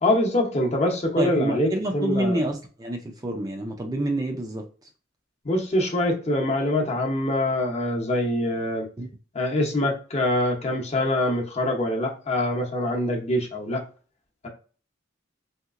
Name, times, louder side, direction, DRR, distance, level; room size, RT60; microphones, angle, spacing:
voice 1, 0.0-2.4 5.4-8.9 9.3-13.8, left 1 dB, 35° left, 1 dB, 0.8 m, -24 dB
voice 2, 1.2-4.6 9.0-9.1, right 1 dB, 20° right, 3 dB, 0.4 m, -28 dB
3.1 x 2.9 x 2.4 m, 0.38 s
head